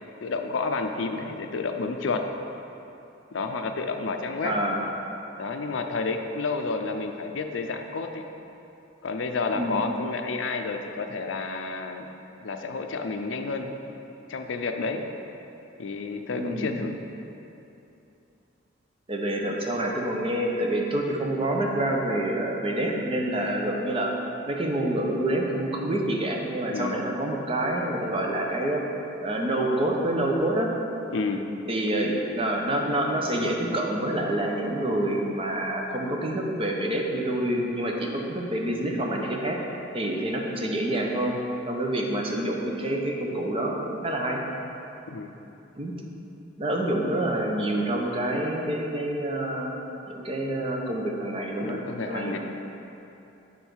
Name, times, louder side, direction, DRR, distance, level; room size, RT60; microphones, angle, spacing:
voice 1, 0.2-2.2 3.3-4.5 5.4-8.2 9.0-12.1 12.4-13.9 14.3-15.1 15.8-17.0 26.7-27.1 31.1-31.4 45.1-45.3 51.6-52.4, left 4 dB, 75° left, 5 dB, 0.5 m, -30 dB
voice 2, 4.4-4.8 9.5-9.8 16.4-16.7 19.1-24.1 24.5-28.8 29.2-30.7 31.7-39.6 39.9-41.4 41.7-44.4 45.8-45.9 46.6-49.8 50.1-52.4, right 1 dB, 30° right, 0 dB, 0.8 m, -27 dB
7.2 x 3.9 x 6.1 m, 2.9 s
head